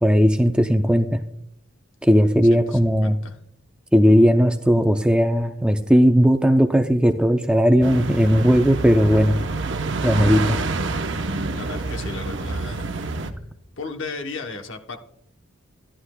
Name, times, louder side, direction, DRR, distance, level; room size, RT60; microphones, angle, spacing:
voice 1, 0.0-1.2 2.0-3.2 3.9-9.4 10.0-10.6, equal, 5° right, 7 dB, 0.4 m, -17 dB
voice 2, 2.5-3.4 11.5-12.9 13.8-15.0, left 4 dB, 65° left, 5 dB, 0.9 m, -35 dB
sound 1, 7.8-13.3, right 3 dB, 60° right, 0.7 m, -27 dB
13.5 x 11.0 x 2.2 m, 0.76 s
head